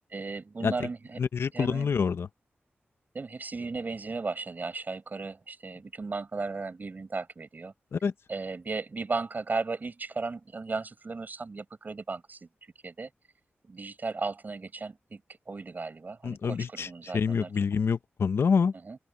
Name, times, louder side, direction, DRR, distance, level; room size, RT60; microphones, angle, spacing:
voice 1, 0.1-1.2 1.5-1.9 3.1-7.7 8.3-12.5 12.8-13.1 13.6-15.2 15.5-17.5 18.8-19.0, right 4 dB, 45° right, 7.0 m, -35 dB
voice 2, 1.2-2.3 7.9-8.1 16.2-16.9 17.1-18.7, left 6 dB, 70° left, 0.7 m, -26 dB
open air
wide cardioid pair, 100°, 4 cm